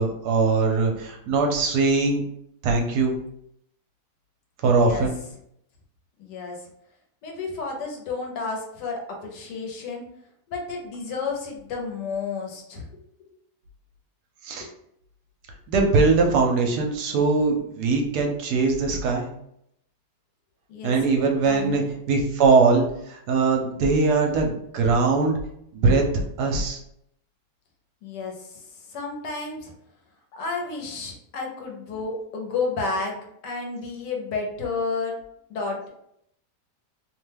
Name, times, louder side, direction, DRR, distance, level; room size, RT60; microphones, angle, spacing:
voice 1, 0.0-2.2 2.6-3.1 4.6-5.1 14.4-14.7 15.7-19.3 20.8-25.4 25.7-26.0 26.4-26.8, right 4 dB, 75° right, 2 dB, 1.1 m, -21 dB
voice 2, 4.6-5.1 6.2-6.6 7.2-10.0 10.5-12.9 14.6-14.7 20.7-20.9 21.4-21.9 28.0-28.6 28.9-29.7 30.3-33.1 33.4-35.2 35.5-35.9, left 4 dB, 80° left, 1 dB, 1.3 m, -31 dB
3.0 x 2.2 x 3.3 m, 0.74 s
omnidirectional pair, 1.8 m